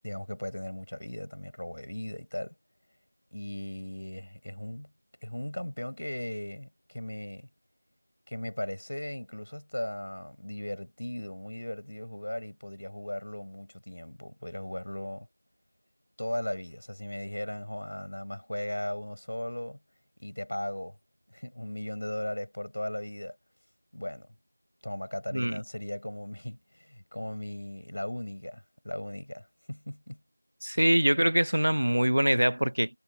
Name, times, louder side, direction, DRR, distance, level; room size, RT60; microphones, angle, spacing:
voice 1, 0.0-2.5 3.3-4.9 5.2-7.5 8.3-15.3 16.2-19.8 20.2-21.0 21.3-23.4 23.9-24.4 24.8-30.2 30.7-30.9, left 1 dB, 60° left, 6.0 m, -37 dB
voice 2, 30.6-32.9, right 1 dB, 70° right, 0.9 m, -24 dB
figure-of-eight pair, 180°, 0 cm